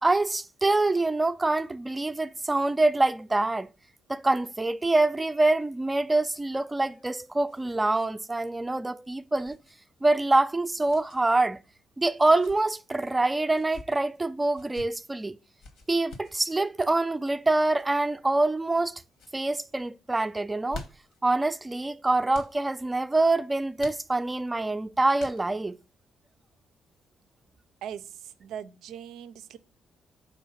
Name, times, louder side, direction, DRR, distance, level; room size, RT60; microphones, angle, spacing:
voice 1, 0.0-3.7 4.1-9.6 10.0-11.6 12.0-15.3 15.9-19.0 19.3-20.8 21.2-25.8, right 2 dB, 15° right, 0.3 m, -25 dB
sound 1, 6.8-8.1 8.4-8.5 9.4-9.7 10.8-11.2 12.1-12.6 13.5-13.9 14.5-14.9 15.6-16.4 17.5-17.9 18.5-18.9 19.1-19.4 20.4-21.2 22.3-22.6 23.8-24.4 25.2-25.7, left 3 dB, 80° left, 1.1 m, -46 dB
voice 2, 27.8-29.6, right 9 dB, 85° right, 0.4 m, -40 dB
5.0 x 3.7 x 5.6 m
cardioid pair, 90°, 0 cm